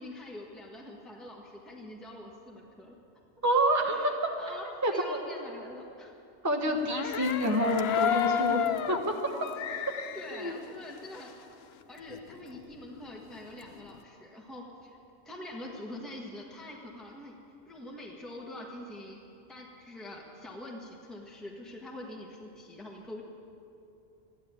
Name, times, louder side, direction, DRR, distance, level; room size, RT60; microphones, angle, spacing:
voice 1, 0.0-3.0 3.9-6.1 10.1-11.3 11.9-15.0 15.2-17.4 17.7-19.2 19.5-23.2, left 1 dB, ahead, -2 dB, 1.4 m, -44 dB
voice 2, 3.4-3.9 4.8-5.2 6.4-9.0 10.3-10.5, right 1 dB, 15° right, 2 dB, 1.0 m, -27 dB
sound 1, 6.9-11.5 11.8-11.9 12.1-14.0, left 9 dB, 75° left, 0.8 m, -32 dB
14.0 x 11.5 x 8.8 m, 2.7 s
omnidirectional pair, 1.1 m